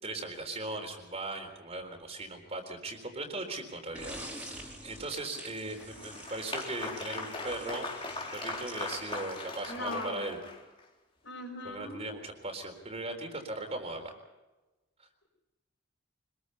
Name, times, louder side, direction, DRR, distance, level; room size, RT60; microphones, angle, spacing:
voice 1, 0.0-7.9 8.3-10.4 11.6-14.1, right 2 dB, 30° right, 5 dB, 3.9 m, -38 dB
sound 1, 3.9-9.8, right 1 dB, 5° right, 4.4 m, -47 dB
Applause, 5.5-10.8, left 3 dB, 25° left, 3.8 m, -40 dB
voice 2, 9.7-10.4 11.2-12.0, left 2 dB, 65° left, 3 dB, 6.2 m, -39 dB
25.5 x 21.5 x 5.6 m, 1.1 s
head